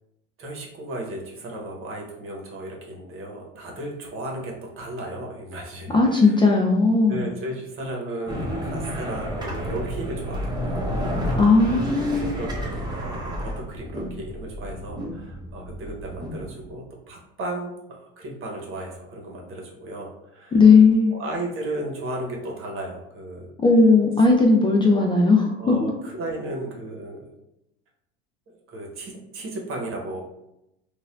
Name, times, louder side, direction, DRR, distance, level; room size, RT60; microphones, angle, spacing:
voice 1, 0.4-6.6 7.1-24.3 25.6-27.2 28.5-30.2, right 1 dB, 45° right, -1 dB, 1.1 m, -35 dB
voice 2, 5.9-7.2 11.3-12.3 20.5-21.1 23.6-25.9, left 4 dB, 15° left, -1 dB, 0.4 m, -17 dB
sound 1, 8.3-16.7, equal, 15° right, 1.0 m, -31 dB
4.0 x 2.4 x 2.5 m, 0.84 s
supercardioid pair, 100°, 30 cm